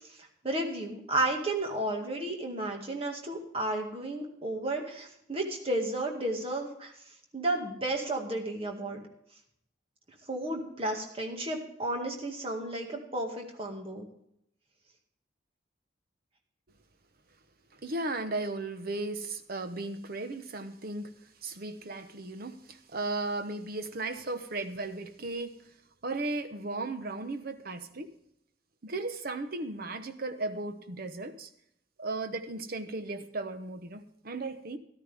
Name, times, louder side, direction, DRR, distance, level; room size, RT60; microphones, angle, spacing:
voice 1, 0.0-6.9 7.3-9.0 10.3-14.1, right 1 dB, 30° right, 1 dB, 2.0 m, -33 dB
voice 2, 17.7-25.7 26.0-28.1 28.8-31.5 32.0-34.8, right 2 dB, 55° right, 9 dB, 1.0 m, -36 dB
13.5 x 12.5 x 3.5 m, 0.74 s
head